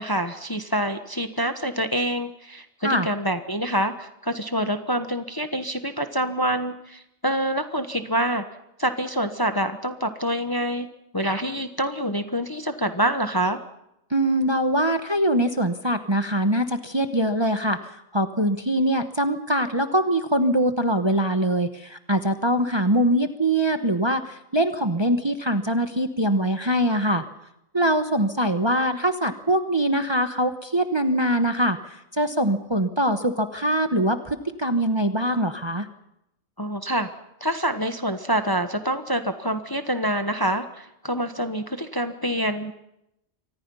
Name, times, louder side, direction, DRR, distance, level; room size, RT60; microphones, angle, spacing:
voice 1, 0.0-8.4 8.8-10.9 11.1-13.6 36.6-37.1 37.4-42.7, right 1 dB, 15° left, 8 dB, 1.1 m, -26 dB
voice 2, 14.1-17.8 18.1-27.2 27.7-35.9, right 1 dB, 20° right, 8 dB, 1.1 m, -23 dB
28.5 x 24.5 x 5.6 m, 0.84 s
omnidirectional pair, 1.4 m